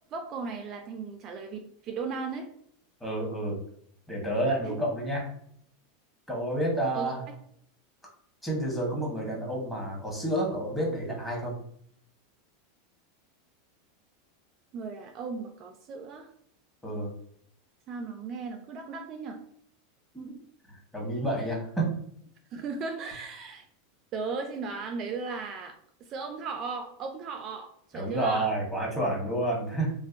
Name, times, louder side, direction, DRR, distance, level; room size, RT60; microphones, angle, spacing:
voice 1, 0.1-2.5 6.9-7.3 14.7-16.3 17.9-19.4 22.5-23.6 24.1-28.5, right 4 dB, 40° right, 5 dB, 0.3 m, -36 dB
voice 2, 3.0-3.6 4.1-5.3 6.3-7.2 8.4-11.6 16.8-17.1 20.1-20.3 20.7-21.9 27.9-29.9, right 1 dB, 5° left, -3 dB, 1.1 m, -29 dB
2.5 x 2.0 x 2.4 m, 0.66 s
hypercardioid pair, 100°, 0 cm